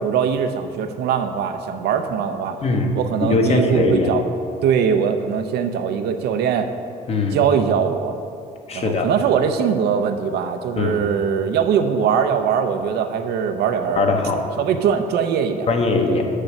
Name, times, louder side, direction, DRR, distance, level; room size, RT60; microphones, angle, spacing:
voice 1, 0.0-2.6 3.0-4.2 4.6-6.7 7.3-8.2 8.7-14.1 14.6-15.7 16.1-16.2, right 7 dB, 75° right, 7 dB, 0.6 m, -21 dB
voice 2, 2.6-2.9 3.2-4.1 7.1-7.4 8.7-9.1 10.8-11.1 13.9-14.5 15.7-16.3, left 3 dB, 35° left, 3 dB, 1.0 m, -20 dB
6.7 x 6.5 x 5.9 m, 2.5 s
cardioid pair, 110°, 17 cm